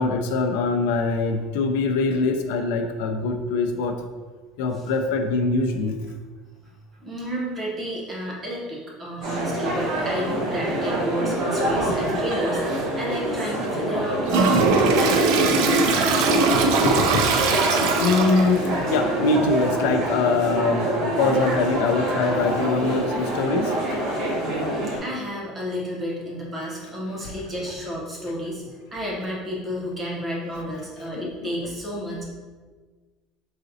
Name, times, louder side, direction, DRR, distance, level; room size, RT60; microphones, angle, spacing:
voice 1, 0.0-4.0 4.6-5.9 11.5-12.0 16.0-17.7 18.0-24.0 27.2-27.3 30.6-30.7 31.1-31.5, left 3 dB, 85° left, 5 dB, 0.4 m, -24 dB
voice 2, 7.0-16.0 24.7-28.6 28.9-32.2, equal, 15° right, -3 dB, 0.8 m, -31 dB
sound 1, 9.2-25.0, right 1 dB, 50° right, 1.1 m, -26 dB
Toilet flush, 14.3-18.6, right 3 dB, 70° right, 0.4 m, -20 dB
4.0 x 3.8 x 2.7 m, 1.4 s
cardioid pair, 170°, 0 cm